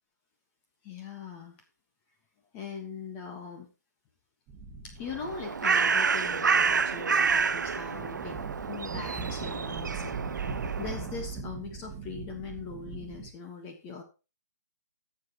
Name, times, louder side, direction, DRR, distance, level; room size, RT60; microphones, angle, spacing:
voice 1, 0.8-1.6 2.5-3.7 4.8-8.4 8.6-14.0, left 5 dB, 25° left, 4 dB, 1.4 m, -41 dB
sound 1, 4.5-13.3, right 5 dB, 20° right, 1.6 m, -40 dB
Bird, 5.1-11.2, right 5 dB, 85° right, 0.5 m, -28 dB
16.0 x 7.1 x 3.0 m, 0.30 s
hypercardioid pair, 145°, 10 cm